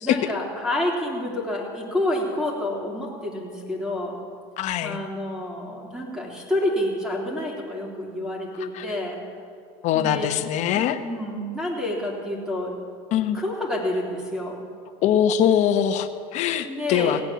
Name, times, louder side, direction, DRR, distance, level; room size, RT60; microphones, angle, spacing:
voice 1, 0.0-4.2 4.8-9.2 9.9-10.5 10.7-12.7 13.3-14.6 16.6-17.2, left 1 dB, 5° right, -1 dB, 3.2 m, -28 dB
voice 2, 4.6-5.0 8.7-8.8 9.8-11.0 13.1-13.4 15.0-17.2, left 9 dB, 45° left, 9 dB, 1.0 m, -22 dB
17.0 x 8.8 x 7.4 m, 2.3 s
supercardioid pair, 125°, 17 cm